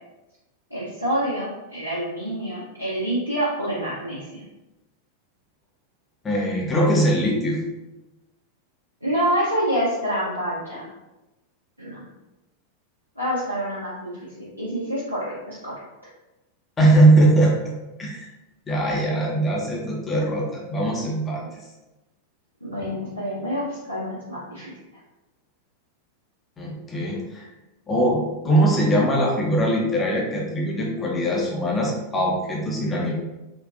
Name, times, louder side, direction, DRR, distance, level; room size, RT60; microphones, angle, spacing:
voice 1, 0.7-4.4 9.0-10.9 11.8-12.0 13.2-15.7 22.6-24.7, equal, 90° right, -10 dB, 0.7 m, -27 dB
voice 2, 6.2-7.6 16.8-17.6 18.0-18.3 18.7-21.5 26.6-27.5 27.9-33.1, right 1 dB, 20° left, -2 dB, 0.7 m, -21 dB
3.7 x 2.5 x 2.4 m, 1.0 s
figure-of-eight pair, 90°, 0 cm